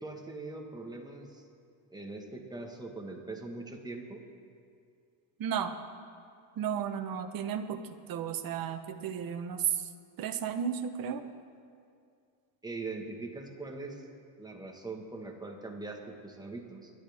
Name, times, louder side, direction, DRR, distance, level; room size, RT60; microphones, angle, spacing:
voice 1, 0.0-1.4 1.9-4.3 12.6-14.0 14.4-16.9, right 3 dB, 10° right, 0 dB, 1.4 m, -41 dB
voice 2, 5.4-5.7 6.6-7.8 8.1-9.9 10.2-11.2, right 8 dB, 45° right, 6 dB, 1.1 m, -33 dB
28.5 x 12.0 x 3.6 m, 2.3 s
cardioid pair, 155°, 50 cm